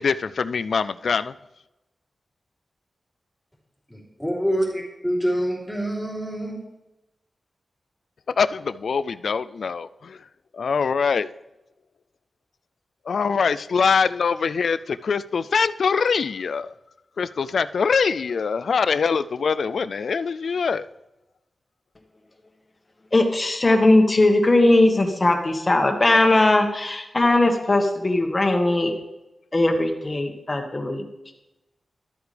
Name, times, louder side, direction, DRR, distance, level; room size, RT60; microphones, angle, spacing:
voice 1, 0.0-1.3 8.4-10.2 10.5-11.3 13.1-16.7 17.2-20.9, left 5 dB, 75° left, 0.3 m, -23 dB
voice 2, 4.2-6.6, equal, ahead, 3.2 m, -25 dB
voice 3, 23.1-28.9 29.5-31.0, left 2 dB, 30° left, 1.5 m, -19 dB
13.0 x 8.1 x 3.4 m
wide cardioid pair, 85°, 0 cm